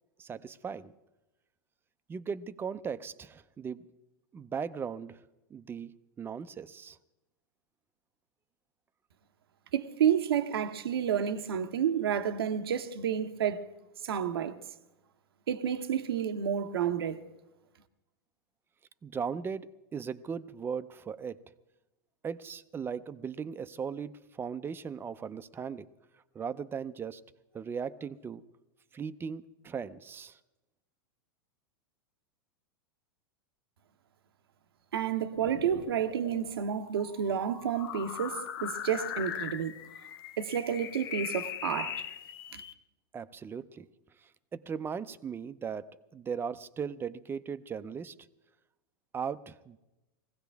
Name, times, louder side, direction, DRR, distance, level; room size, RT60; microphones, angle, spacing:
voice 1, 0.2-0.9 2.1-3.9 4.3-5.2 5.5-7.0 19.0-21.4 22.2-25.9 26.3-27.2 27.5-28.4 28.9-30.4 43.1-43.9 44.2-48.1 49.1-49.8, right 6 dB, 20° right, 0.6 m, -38 dB
voice 2, 9.7-13.6 14.0-14.6 15.5-17.2 34.9-39.7 40.4-42.0 42.5-42.6, right 8 dB, 85° right, 0.9 m, -30 dB
sound 1, 35.3-42.7, left 10 dB, 75° left, 0.8 m, -40 dB
21.0 x 16.0 x 3.5 m
hypercardioid pair, 120°, 12 cm